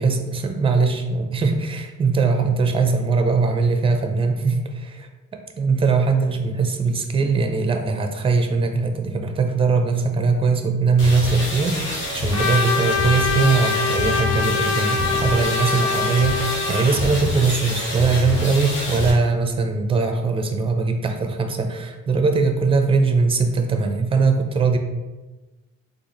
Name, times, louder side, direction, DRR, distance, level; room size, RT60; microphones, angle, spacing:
voice 1, 0.0-5.1 5.6-24.8, right 4 dB, 20° right, 5 dB, 0.4 m, -21 dB
sound 1, 11.0-19.1, left 2 dB, 85° left, 1.3 m, -27 dB
Trumpet, 12.3-17.0, left 5 dB, 55° left, 0.6 m, -24 dB
3.7 x 2.4 x 3.0 m, 1.1 s
cardioid pair, 90°, 30 cm